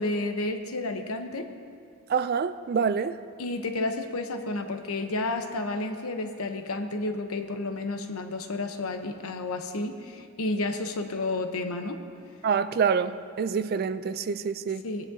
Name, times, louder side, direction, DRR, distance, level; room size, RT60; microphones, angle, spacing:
voice 1, 0.0-1.5 3.4-12.0 14.8-15.1, left 2 dB, 75° left, 0.9 m, -31 dB
voice 2, 2.1-3.2 12.4-14.8, right 6 dB, 45° right, 0.3 m, -26 dB
19.5 x 10.0 x 2.8 m
head